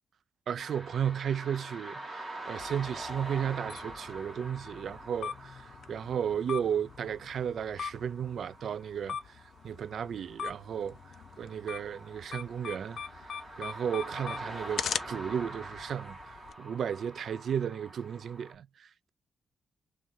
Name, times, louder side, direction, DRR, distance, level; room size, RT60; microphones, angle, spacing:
voice 1, 0.5-9.4 9.6-11.0 11.4-13.0 13.6-19.1, right 8 dB, 55° right, 0.3 m, -34 dB
sound 1, 0.6-18.5, right 2 dB, 10° right, 1.7 m, -45 dB
sound 2, 2.6-16.5, left 7 dB, 60° left, 0.4 m, -42 dB
3.2 x 2.7 x 3.7 m
wide cardioid pair, 170°, 0 cm